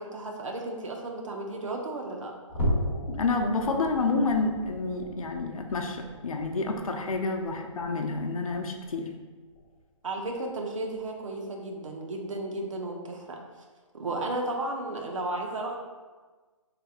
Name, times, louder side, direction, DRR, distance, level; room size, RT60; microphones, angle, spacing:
voice 1, 0.0-2.3 2.6-2.7 7.4-7.7 10.0-13.4 13.9-15.8, right 2 dB, 65° right, 2 dB, 0.7 m, -34 dB
sound 1, 2.5-9.2 9.5-9.8 10.2-10.4 10.9-11.1, equal, 20° left, 0.7 m, -36 dB
voice 2, 3.1-9.1, left 3 dB, 85° left, 3 dB, 0.6 m, -29 dB
4.5 x 3.3 x 2.4 m, 1.4 s
hypercardioid pair, 165°, 17 cm